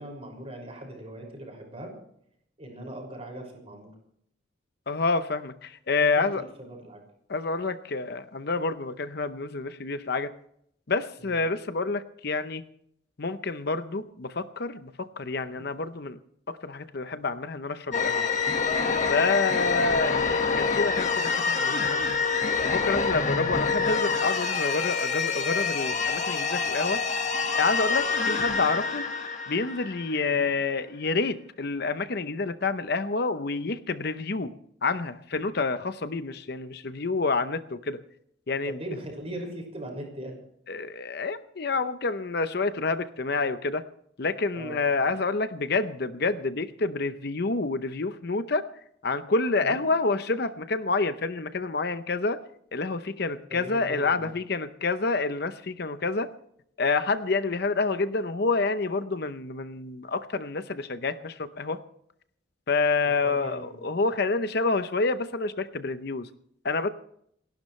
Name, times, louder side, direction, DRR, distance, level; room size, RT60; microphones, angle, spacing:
voice 1, 0.0-1.9 2.6-3.9 6.0-7.0 11.2-11.3 15.4-15.6 19.5-20.1 30.3-30.5 38.6-40.4 44.5-45.1 49.6-49.8 53.5-54.3 63.0-63.8, right 1 dB, 30° right, 1 dB, 5.9 m, -40 dB
voice 2, 4.9-6.4 7.3-10.3 10.9-12.6 13.2-16.2 16.5-18.3 19.1-22.2 22.6-27.0 27.6-29.1 29.5-34.5 34.8-38.0 38.5-38.8 40.7-43.8 44.2-48.6 49.0-52.4 52.7-56.3 56.8-61.8 62.7-66.3 66.6-66.9, left 3 dB, 55° left, 11 dB, 0.7 m, -28 dB
sound 1, 17.9-30.4, left 5 dB, 40° left, 1.6 m, -26 dB
28.5 x 12.0 x 3.2 m, 0.71 s
head